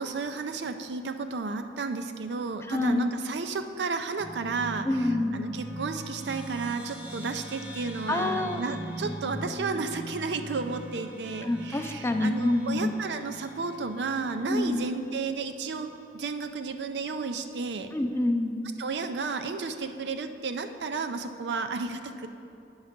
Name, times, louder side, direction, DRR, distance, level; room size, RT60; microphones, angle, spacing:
voice 1, 0.0-4.9 5.3-17.9 18.8-22.3, right 4 dB, 75° right, 8 dB, 0.5 m, -32 dB
voice 2, 2.7-3.1 4.8-5.4 8.1-8.6 11.4-12.9 14.5-14.9 17.9-18.6, left 2 dB, 15° left, 6 dB, 0.4 m, -27 dB
sound 1, 4.2-15.0, equal, 5° right, 0.8 m, -40 dB
9.2 x 5.6 x 5.1 m, 2.6 s
head